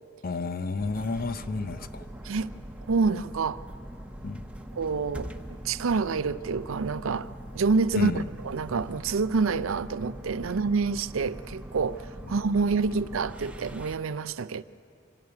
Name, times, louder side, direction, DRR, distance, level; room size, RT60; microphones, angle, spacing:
voice 1, 0.2-2.1 4.2-4.4 7.9-8.3 10.4-10.5, left 3 dB, 45° left, 0.7 m, -31 dB
sound 1, 0.8-14.0, equal, 5° right, 0.9 m, -42 dB
voice 2, 2.9-3.6 4.8-5.3 5.6-7.3 7.5-14.6, right 4 dB, 80° right, 0.5 m, -27 dB
24.5 x 14.0 x 9.5 m
head